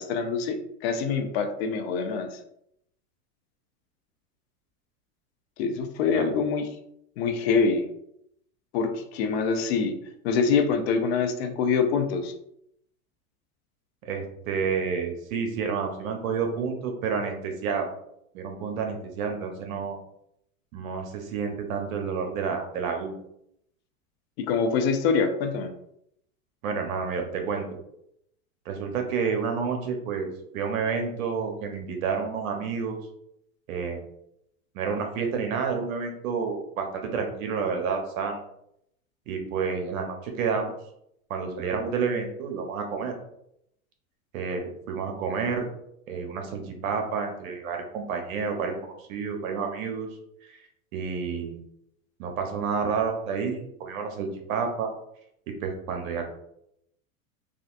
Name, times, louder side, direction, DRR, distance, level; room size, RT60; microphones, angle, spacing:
voice 1, 0.0-2.4 5.6-6.7 7.2-7.9 8.7-10.0 10.2-12.3 24.4-25.7, left 5 dB, 50° left, 7 dB, 0.4 m, -25 dB
voice 2, 14.0-17.9 18.3-20.0 20.7-23.1 26.6-27.6 28.7-30.3 30.5-33.0 33.7-34.0 34.7-38.4 39.3-40.7 41.3-43.1 44.3-45.7 46.1-50.1 50.4-50.6 50.9-51.6 52.2-54.9 55.5-56.2, right 5 dB, 70° right, 3 dB, 0.9 m, -29 dB
3.3 x 2.4 x 2.4 m, 0.75 s
hypercardioid pair, 120°, 43 cm